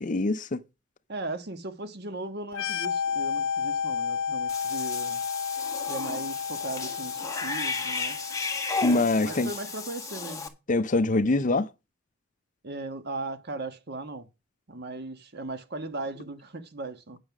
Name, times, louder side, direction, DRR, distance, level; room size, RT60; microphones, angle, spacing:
voice 1, 0.0-0.6 8.8-9.5 10.7-11.7, left 2 dB, 40° left, 0.5 m, -24 dB
voice 2, 1.1-5.2 5.9-8.2 9.2-10.5 12.6-14.3 14.7-17.2, right 2 dB, 55° right, 1.4 m, -37 dB
sound 1, 2.5-10.0, left 6 dB, 80° left, 1.0 m, -32 dB
Cat / Bathtub (filling or washing), 4.5-10.5, left 4 dB, 15° left, 1.4 m, -34 dB
9.3 x 6.3 x 6.0 m
head